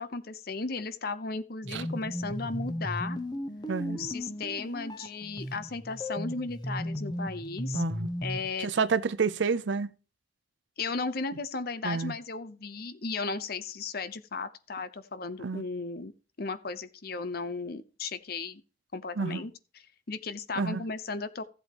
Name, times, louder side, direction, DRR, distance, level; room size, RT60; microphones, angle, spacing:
voice 1, 0.0-3.2 3.9-7.8 8.2-8.8 10.8-16.1 16.4-18.6 18.9-19.5 20.1-21.4, left 4 dB, 55° left, 0.8 m, -35 dB
sound 1, 1.6-8.5, equal, 25° left, 1.1 m, -36 dB
voice 2, 3.7-4.1 7.7-8.1 8.6-9.9 11.8-12.1 15.4-15.6 19.2-19.4 20.6-20.8, right 5 dB, 80° right, 0.6 m, -29 dB
15.0 x 7.9 x 3.0 m
head